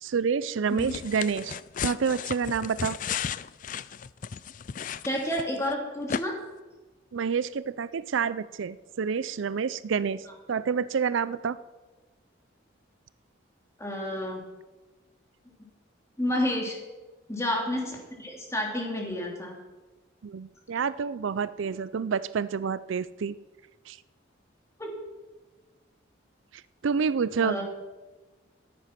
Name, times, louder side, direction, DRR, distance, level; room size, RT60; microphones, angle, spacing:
voice 1, 0.0-3.0 7.1-11.6 20.2-23.3 23.9-24.0 26.8-27.6, right 6 dB, 75° right, 17 dB, 0.4 m, -28 dB
sound 1, 0.8-5.7 6.1-6.2, left 7 dB, 40° left, 0.4 m, -34 dB
voice 2, 5.0-6.3 13.8-14.4 16.2-16.8 17.3-19.5 24.8-24.9 27.4-27.6, left 1 dB, 15° left, 0 dB, 2.7 m, -30 dB
14.0 x 10.5 x 5.9 m, 1.2 s
head